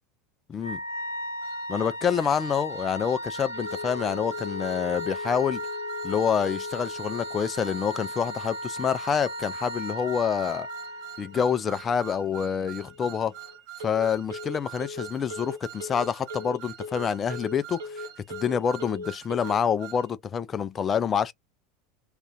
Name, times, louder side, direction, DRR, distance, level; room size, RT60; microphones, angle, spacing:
voice 1, 0.5-0.8 1.7-5.6 6.0-10.7 11.2-13.3 13.8-21.3, left 7 dB, 25° left, 0.4 m, -27 dB
Wind instrument woodwind instrument, 0.6-11.4, equal, 70° left, 0.6 m, -37 dB
sound 1, 1.4-20.1, right 13 dB, 50° right, 0.6 m, -45 dB
Telephone, 3.5-19.6, left 4 dB, 70° right, 1.0 m, -40 dB
2.4 x 2.4 x 3.6 m
figure-of-eight pair, 80°, 0 cm